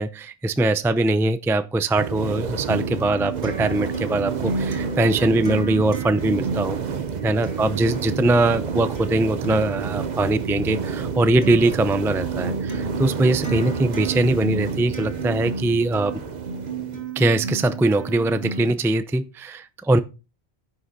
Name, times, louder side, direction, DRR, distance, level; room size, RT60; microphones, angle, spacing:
voice 1, 0.0-6.8 7.2-16.2 17.2-20.0, right 2 dB, 5° right, 0.3 m, -22 dB
sound 1, 2.0-17.1, right 6 dB, 45° right, 0.8 m, -30 dB
Acoustic guitar, 2.7-18.7, right 4 dB, 70° right, 2.1 m, -32 dB
9.7 x 6.3 x 4.0 m
omnidirectional pair, 1.1 m